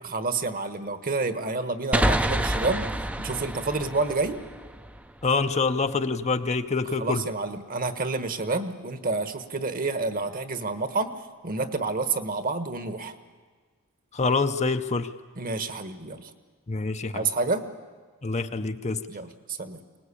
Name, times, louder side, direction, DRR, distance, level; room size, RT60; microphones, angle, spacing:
voice 1, 0.1-2.9 3.2-4.4 7.0-11.1 11.4-13.1 15.4-16.3 17.1-17.7 19.1-19.8, right 3 dB, 40° right, 10 dB, 1.3 m, -29 dB
sound 1, 1.9-5.4, right 1 dB, 5° right, 0.6 m, -28 dB
voice 2, 5.2-7.2 14.1-15.1 16.7-17.3 18.2-19.0, left 4 dB, 30° left, 9 dB, 0.7 m, -26 dB
23.5 x 19.5 x 8.5 m, 1.5 s
head